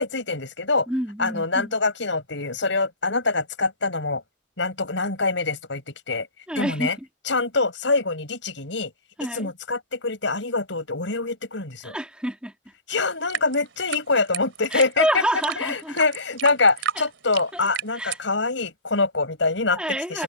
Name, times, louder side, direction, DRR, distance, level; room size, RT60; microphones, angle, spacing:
voice 1, 0.0-0.9 1.2-4.2 4.6-5.8 6.1-6.3 6.6-7.0 7.3-8.9 9.3-12.0 12.9-15.2 15.6-20.2, left 3 dB, 85° left, 5.3 m, -25 dB
voice 2, 0.9-1.7 6.5-6.9 9.2-9.5 11.8-12.5 14.7-16.0 17.0-17.1 17.5-17.7 17.9-18.2 19.7-20.2, right 1 dB, 5° right, 2.2 m, -28 dB
sound 1, 13.1-18.3, right 8 dB, 90° right, 3.1 m, -32 dB
head